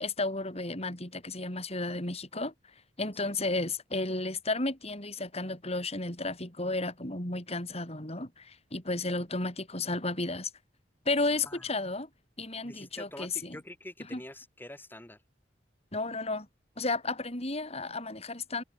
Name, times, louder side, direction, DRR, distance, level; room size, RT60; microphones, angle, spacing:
voice 1, 0.0-2.5 3.0-10.5 11.1-12.1 12.4-13.6 14.1-14.2 15.9-16.5 16.8-18.6, left 2 dB, 35° left, 7.2 m, -33 dB
voice 2, 12.6-15.2, left 1 dB, 10° left, 5.2 m, -46 dB
head